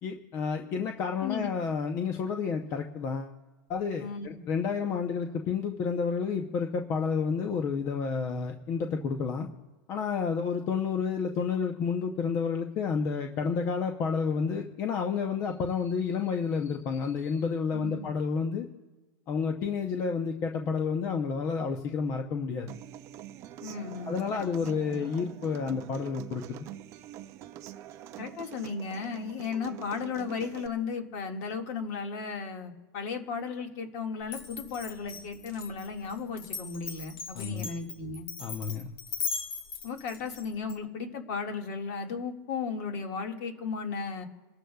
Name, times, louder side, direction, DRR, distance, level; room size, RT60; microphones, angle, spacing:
voice 1, 0.0-3.4 3.7-9.5 9.9-18.7 19.3-22.7 24.1-26.4 37.3-37.7 38.4-38.9, left 5 dB, 25° left, 4 dB, 0.7 m, -30 dB
voice 2, 17.7-18.1 23.6-25.0 28.2-38.3 39.8-44.2, left 5 dB, 45° left, 3 dB, 1.8 m, -35 dB
Human voice / Acoustic guitar, 22.7-30.7, right 12 dB, 25° right, 0.4 m, -45 dB
Glass, 34.3-40.7, left 5 dB, 90° left, 2.9 m, -38 dB
28.5 x 13.0 x 2.3 m, 1.3 s
supercardioid pair, 170°, 12 cm